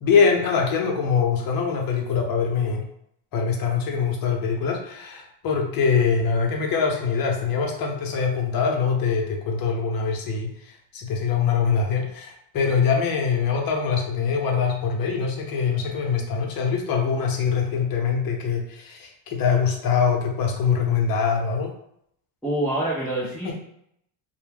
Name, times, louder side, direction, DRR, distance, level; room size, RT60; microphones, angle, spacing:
voice 1, 0.0-2.8 3.3-21.7 23.4-23.5, left 6 dB, 50° left, 1 dB, 0.8 m, -23 dB
voice 2, 22.4-23.5, right 1 dB, ahead, -10 dB, 0.7 m, -26 dB
2.2 x 2.1 x 3.3 m, 0.73 s
supercardioid pair, 100°, 46 cm